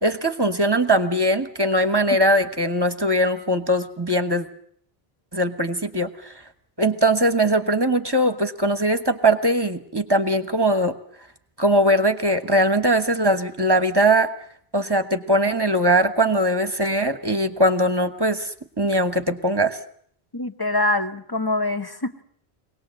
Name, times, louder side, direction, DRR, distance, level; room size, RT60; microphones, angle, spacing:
voice 1, 0.0-4.5 5.3-6.3 6.8-10.9 11.6-14.3 14.7-19.8, right 1 dB, 25° right, 9 dB, 1.3 m, -21 dB
voice 2, 20.3-22.2, left 2 dB, 20° left, 7 dB, 1.1 m, -24 dB
24.0 x 18.5 x 7.8 m, 0.62 s
omnidirectional pair, 1.1 m